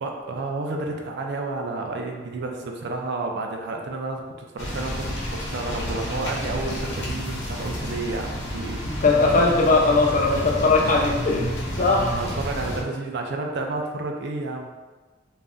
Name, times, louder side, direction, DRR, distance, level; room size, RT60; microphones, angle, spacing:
voice 1, 0.0-8.8 10.2-10.3 10.8-11.0 12.1-14.7, right 2 dB, 60° right, 2 dB, 0.4 m, -31 dB
sound 1, 4.6-12.8, equal, 70° left, 0.8 m, -30 dB
voice 2, 8.8-11.5 11.8-12.1, left 3 dB, 45° left, -1 dB, 0.5 m, -19 dB
2.6 x 2.1 x 3.5 m, 1.3 s
head